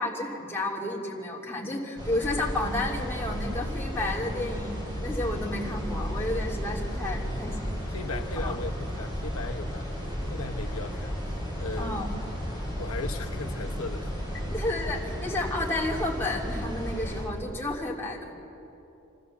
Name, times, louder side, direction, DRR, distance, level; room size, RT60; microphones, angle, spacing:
voice 1, 0.0-7.7 8.4-8.6 11.8-12.1 14.5-18.3, left 2 dB, 10° left, -3 dB, 2.9 m, -31 dB
sound 1, 2.0-17.2, equal, 20° right, 6.3 m, -33 dB
voice 2, 7.9-12.0 12.8-14.1 14.4-14.5, left 3 dB, 85° left, 4 dB, 1.0 m, -38 dB
27.0 x 14.5 x 7.2 m, 2.9 s
head